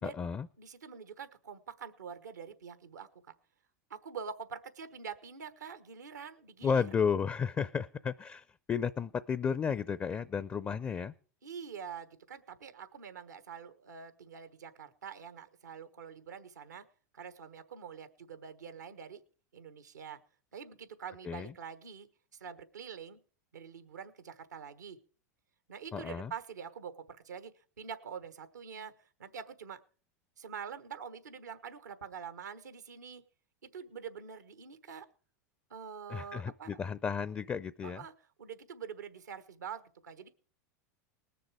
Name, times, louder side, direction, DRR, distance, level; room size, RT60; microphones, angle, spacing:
voice 1, 0.0-0.5 6.6-11.1 21.2-21.5 25.9-26.3 36.1-38.0, left 6 dB, 25° left, 16 dB, 0.5 m, -33 dB
voice 2, 0.6-3.2 3.9-6.9 11.4-16.8 17.1-19.2 19.5-20.2 20.5-23.2 23.5-25.0 25.7-28.9 29.2-29.8 30.4-33.2 33.6-35.1 35.7-36.7 37.8-38.1 38.4-40.3, right 7 dB, 90° right, 11 dB, 1.2 m, -45 dB
19.5 x 6.8 x 4.8 m, 0.39 s
hypercardioid pair, 95°, 9 cm